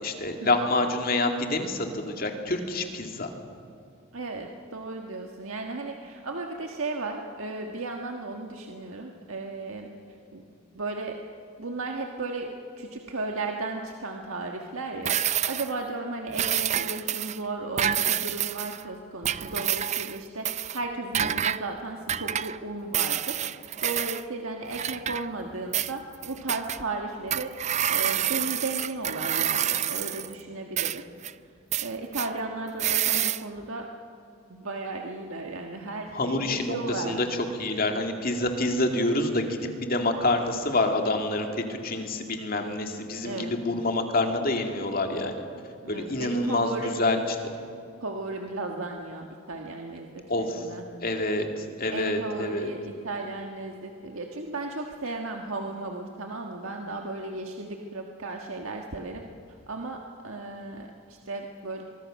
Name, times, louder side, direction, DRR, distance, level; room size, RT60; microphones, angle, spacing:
voice 1, 0.0-3.3 36.1-37.3 37.6-45.3 45.9-47.2 50.3-50.7 51.0-52.7, left 2 dB, 45° left, 4 dB, 2.4 m, -27 dB
voice 2, 4.1-9.9 10.3-10.5 10.7-11.2 11.6-23.4 23.8-27.5 27.9-31.0 31.4-33.9 34.5-37.3 37.7-37.8 43.2-43.6 45.8-47.0 48.0-50.9 51.9-59.2 59.7-61.8, right 2 dB, 85° right, 2 dB, 1.6 m, -35 dB
sound 1, 15.1-15.8 16.3-17.4 17.8-18.8 19.2-20.2 20.5-20.8 21.1-21.6 22.1-22.6 22.9-24.2 24.7-25.5 25.7-26.8 27.3-30.3 30.8-31.3 31.7-32.3 32.8-33.4, right 10 dB, 35° right, 0.4 m, -28 dB
23.5 x 23.5 x 6.5 m, 2.5 s
head